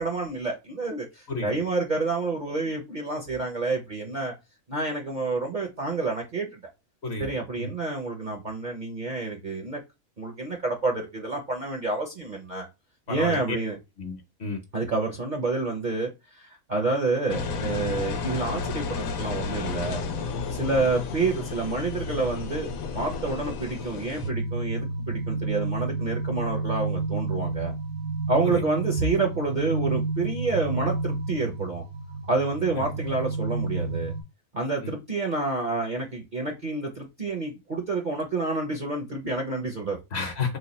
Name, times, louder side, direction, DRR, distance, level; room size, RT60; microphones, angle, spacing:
voice 1, 0.0-4.3 4.7-6.6 7.2-9.8 10.2-12.7 13.1-13.8 14.7-20.0 20.5-27.7 28.3-31.8 32.3-34.1 34.5-40.0, right 3 dB, 45° right, 0.6 m, -28 dB
voice 2, 7.0-7.7 13.1-13.6 14.0-14.6 28.4-28.6 32.7-32.9 34.8-34.9 40.1-40.6, left 4 dB, 55° left, 1.1 m, -32 dB
Engine, 17.3-24.3, left 4 dB, 85° left, 1.1 m, -32 dB
sound 1, 24.2-34.2, right 3 dB, 70° right, 1.0 m, -30 dB
3.1 x 2.2 x 4.1 m
omnidirectional pair, 1.4 m